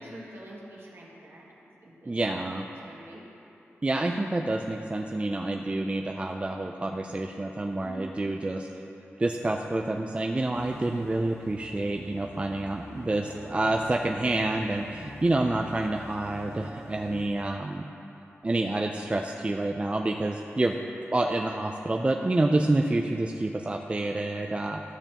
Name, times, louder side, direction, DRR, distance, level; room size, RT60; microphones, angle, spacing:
voice 1, 0.0-1.5 1.8-2.4 2.8-3.2 7.8-8.0 13.2-13.4 22.2-22.4, right 1 dB, 55° right, -4 dB, 1.6 m, -46 dB
voice 2, 2.1-2.6 3.8-8.7 9.2-17.9 18.4-20.7 21.1-24.8, right 2 dB, 25° right, 2 dB, 0.4 m, -28 dB
sound 1, 10.5-17.3, left 2 dB, 75° left, 0.7 m, -46 dB
13.0 x 6.7 x 2.9 m, 2.9 s
wide cardioid pair, 70°, 5 cm